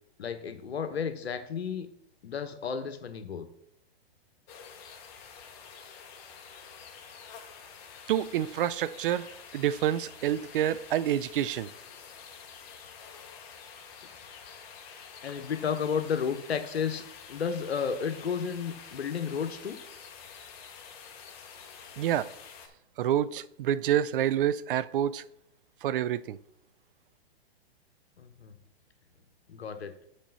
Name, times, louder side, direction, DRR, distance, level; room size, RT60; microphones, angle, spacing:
voice 1, 0.2-1.9 2.2-3.5 15.2-19.8 28.2-28.5 29.5-29.9, left 6 dB, 85° left, 1.1 m, -32 dB
sound 1, 4.5-22.7, left 6 dB, 40° left, 1.2 m, -48 dB
voice 2, 8.1-9.3 9.5-11.7 22.0-22.3 23.0-25.2 25.8-26.4, right 11 dB, 60° right, 0.5 m, -28 dB
7.4 x 4.3 x 5.5 m
hypercardioid pair, 125°, 31 cm